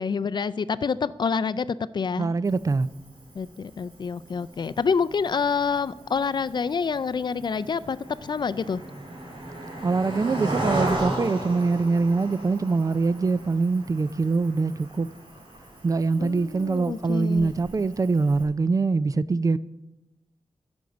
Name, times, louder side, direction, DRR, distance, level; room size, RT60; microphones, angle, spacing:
voice 1, 0.0-1.7 1.9-2.4 3.3-8.8 16.2-17.5, left 5 dB, 50° left, 0.4 m, -27 dB
voice 2, 2.2-2.9 9.8-15.1 15.8-19.6, right 4 dB, 35° right, 0.4 m, -24 dB
Cricket, 2.4-18.4, right 1 dB, 50° right, 3.4 m, -36 dB
13.5 x 5.3 x 7.8 m
wide cardioid pair, 155°, 10 cm